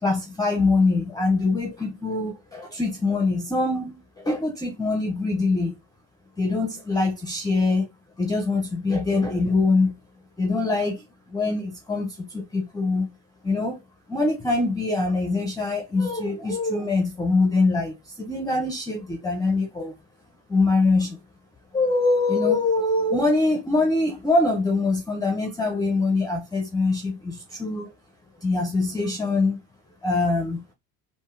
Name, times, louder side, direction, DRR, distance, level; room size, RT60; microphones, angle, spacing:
voice 1, 0.0-5.7 6.4-7.9 8.2-9.9 10.4-13.1 13.4-13.8 14.1-19.9 20.5-21.2 21.7-27.9 28.4-29.6 30.0-30.6, left 3 dB, 10° left, 0.4 m, -23 dB
3.5 x 2.1 x 2.3 m
hypercardioid pair, 70°, 49 cm